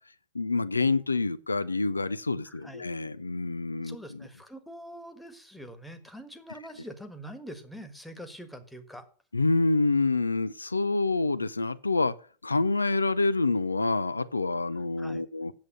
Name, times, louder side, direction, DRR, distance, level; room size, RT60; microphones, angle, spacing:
voice 1, 0.3-4.3 9.3-12.2 12.4-15.5, left 3 dB, 80° left, 0.4 m, -27 dB
voice 2, 2.4-2.9 3.8-9.0 15.0-15.2, equal, 5° left, 1.4 m, -44 dB
8.7 x 7.4 x 6.5 m
figure-of-eight pair, 90°, 0 cm